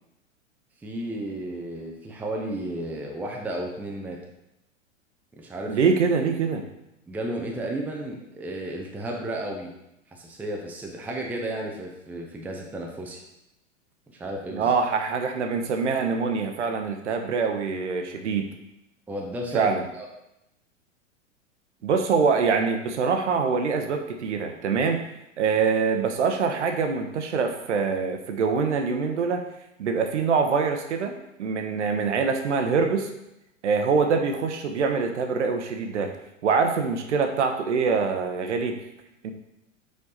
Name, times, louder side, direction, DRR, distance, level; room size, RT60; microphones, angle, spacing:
voice 1, 0.8-4.2 5.4-5.8 7.1-9.7 10.1-13.2 14.2-14.7 19.1-20.1, right 1 dB, 5° right, 0 dB, 0.6 m, -33 dB
voice 2, 5.7-6.6 14.5-18.5 19.5-19.8 21.8-25.0 25.4-29.5 29.8-31.1 31.4-33.1 33.6-36.1 36.4-38.8 39.2-39.3, right 5 dB, 60° right, 5 dB, 0.9 m, -24 dB
5.1 x 4.7 x 4.0 m, 0.85 s
figure-of-eight pair, 100°, 39 cm